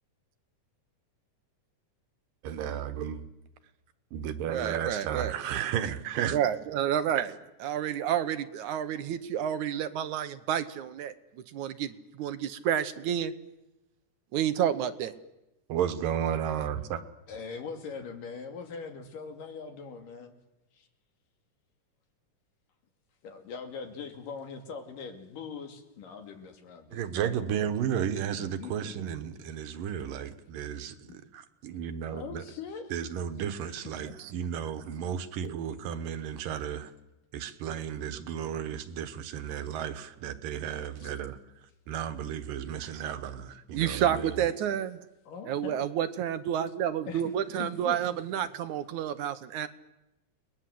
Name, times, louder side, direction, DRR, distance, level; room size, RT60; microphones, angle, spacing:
voice 1, 2.4-3.3 4.1-6.4 7.2-7.3 15.7-17.0 26.9-31.0 31.3-32.4 32.9-36.9 37.3-41.4 41.9-44.4, right 9 dB, 90° right, 9 dB, 3.0 m, -33 dB
voice 2, 4.5-5.6 6.3-7.3 7.6-11.1 11.5-13.3 14.3-15.1 34.2-34.3 42.8-43.0 43.7-45.0 45.5-49.7, right 10 dB, 70° right, 11 dB, 2.3 m, -30 dB
voice 3, 17.3-20.3 20.8-20.9 23.2-27.9 28.4-28.9 31.1-31.2 32.0-32.9 41.0-41.1 45.3-45.8 47.1-47.2 47.6-48.5, left 5 dB, 80° left, 5 dB, 4.1 m, -42 dB
30.0 x 21.0 x 7.8 m, 0.95 s
omnidirectional pair, 3.8 m